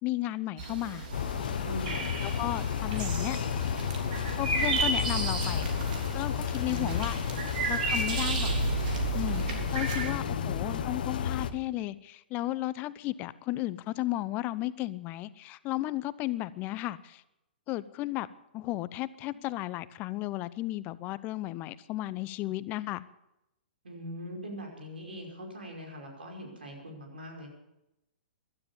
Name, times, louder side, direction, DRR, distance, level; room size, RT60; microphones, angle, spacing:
voice 1, 0.0-1.1 2.2-3.4 4.4-5.7 6.1-7.2 7.7-8.5 9.1-17.2 17.7-18.3 18.5-23.0, left 16 dB, 30° left, 17 dB, 0.7 m, -34 dB
sound 1, 0.6-10.1, right 4 dB, 55° right, 3.4 m, -33 dB
sound 2, 1.1-11.5, left 8 dB, 65° left, 1.2 m, -32 dB
voice 2, 1.6-2.1 6.6-7.5 9.9-10.9 23.8-27.5, left 1 dB, 80° right, 1 dB, 5.3 m, -41 dB
16.0 x 12.0 x 7.1 m, 0.89 s
hypercardioid pair, 120°, 5 cm